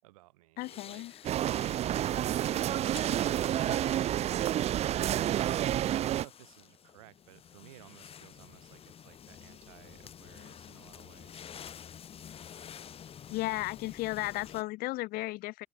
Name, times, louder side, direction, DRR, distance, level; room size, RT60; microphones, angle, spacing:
voice 1, 0.0-1.1 5.2-11.5, right 19 dB, 85° right, 4.4 m, -56 dB
voice 2, 0.6-1.1 13.3-15.7, left 19 dB, 60° left, 0.9 m, -34 dB
sound 1, 0.6-14.6, left 8 dB, 35° left, 1.3 m, -50 dB
sound 2, 1.2-6.3, right 12 dB, 35° right, 0.5 m, -29 dB
supercardioid pair, 105°, 18 cm